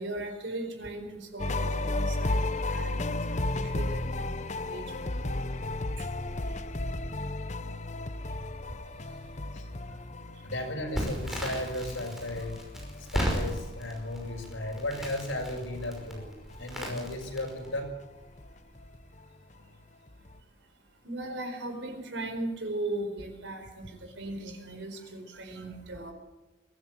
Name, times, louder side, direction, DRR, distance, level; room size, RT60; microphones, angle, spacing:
voice 1, 0.0-2.4 2.7-3.9 4.2-4.9 21.0-26.1, right 2 dB, 70° right, 5 dB, 4.7 m, -38 dB
sound 1, 1.4-16.7 17.0-19.8 20.1-20.4, left 2 dB, 40° left, 0.9 m, -35 dB
voice 2, 10.4-12.6 13.0-16.3 16.6-17.9, left 1 dB, 85° left, 2 dB, 6.0 m, -35 dB
Crackle, 10.9-17.8, equal, ahead, 5.4 m, -36 dB
22.5 x 15.0 x 7.8 m, 1.1 s
head